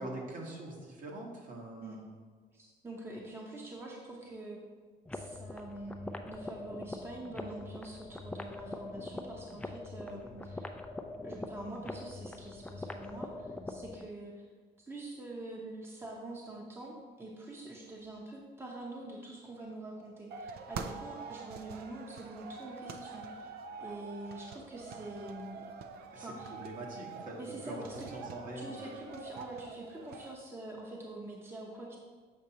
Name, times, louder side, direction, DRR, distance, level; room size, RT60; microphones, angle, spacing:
voice 1, 0.0-2.1 10.0-10.3 26.1-28.8, right 1 dB, 50° right, -1 dB, 1.4 m, -43 dB
voice 2, 2.5-4.6 5.1-10.8 11.2-14.5 14.8-23.5 23.8-25.6 26.1-26.6 27.4-28.1 28.6-32.0, right 2 dB, 15° right, -2 dB, 0.8 m, -45 dB
sound 1, 5.1-14.1, left 2 dB, 5° left, 0.4 m, -43 dB
sound 2, 20.3-30.4, right 5 dB, 70° right, 0.5 m, -46 dB
7.5 x 5.1 x 2.9 m, 1.6 s
cardioid pair, 110°, 17 cm